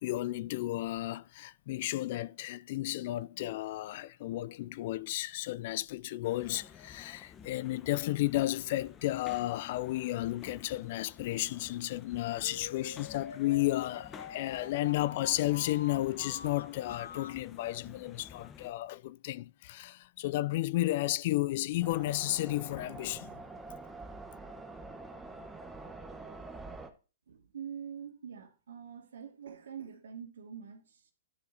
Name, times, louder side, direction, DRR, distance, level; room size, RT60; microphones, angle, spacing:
voice 1, 0.0-23.3, left 16 dB, 50° left, 0.3 m, -33 dB
sound 1, 6.2-18.7, left 7 dB, 20° left, 0.8 m, -52 dB
sound 2, 12.4-17.4, left 7 dB, 80° left, 0.8 m, -47 dB
sound 3, 21.8-26.9, right 3 dB, 5° right, 1.0 m, -46 dB
voice 2, 27.3-31.1, right 8 dB, 80° right, 2.2 m, -45 dB
12.0 x 4.9 x 3.9 m
hypercardioid pair, 140°, 0 cm